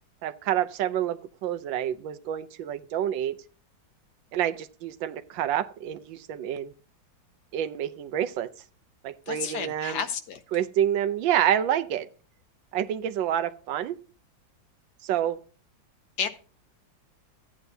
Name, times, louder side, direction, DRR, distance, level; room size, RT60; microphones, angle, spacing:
voice 1, 0.2-3.4 4.3-6.7 7.5-8.5 9.0-10.0 10.5-12.1 12.7-14.0 15.0-15.4, right 10 dB, 85° right, 10 dB, 1.4 m, -28 dB
voice 2, 9.3-10.4 16.2-16.3, left 7 dB, 65° left, 10 dB, 1.3 m, -31 dB
14.0 x 9.0 x 2.7 m, 0.38 s
omnidirectional pair, 2.0 m